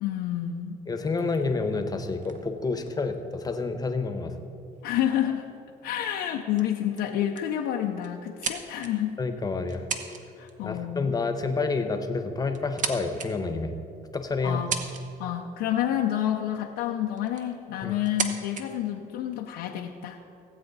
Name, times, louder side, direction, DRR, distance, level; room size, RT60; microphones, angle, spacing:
voice 1, 0.0-0.8 4.8-5.4 5.8-9.2 10.4-11.1 14.4-14.7 15.2-20.2, left 11 dB, 90° left, 1 dB, 0.7 m, -29 dB
voice 2, 0.9-4.3 9.2-9.9 10.6-13.8 14.1-14.6 17.8-17.9, left 4 dB, 20° left, 7 dB, 1.0 m, -29 dB
sound 1, 1.3-3.9 4.8-4.9 5.1-5.4 6.0-6.3 6.6-6.7 7.0-7.5 8.0-9.1 9.7-10.2 10.5-10.8 11.8-11.9 12.4-13.3 13.9-14.0 14.5-15.3 16.6-16.7 17.2-17.5 18.0-18.6, right 5 dB, 50° right, 1.0 m, -35 dB
17.5 x 8.1 x 4.0 m, 2.7 s
cardioid pair, 110°, 17 cm